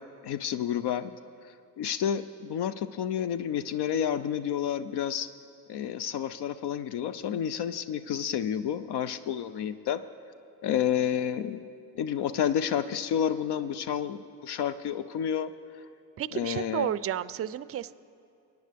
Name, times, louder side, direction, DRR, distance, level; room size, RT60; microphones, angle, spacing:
voice 1, 0.2-1.1 1.8-5.3 5.7-10.0 10.6-11.7 12.0-15.5 16.3-16.9, left 9 dB, 65° left, 12 dB, 0.5 m, -30 dB
voice 2, 16.2-17.9, right 11 dB, 35° right, 16 dB, 0.4 m, -31 dB
23.5 x 9.2 x 3.5 m, 2.4 s
cardioid pair, 75°, 43 cm